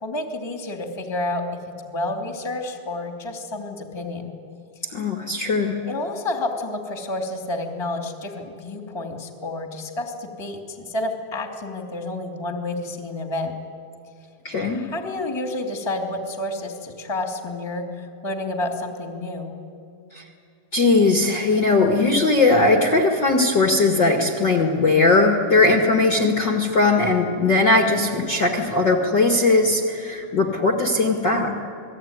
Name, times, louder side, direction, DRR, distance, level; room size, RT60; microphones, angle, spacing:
voice 1, 0.0-1.5 1.8-4.3 5.8-13.5 14.6-19.6, left 2 dB, 10° left, 3 dB, 2.2 m, -30 dB
voice 2, 4.9-5.8 14.4-14.8 20.1-20.2 20.7-31.6, left 3 dB, 40° left, 2 dB, 2.2 m, -19 dB
29.0 x 20.5 x 9.6 m, 2.5 s
omnidirectional pair, 3.8 m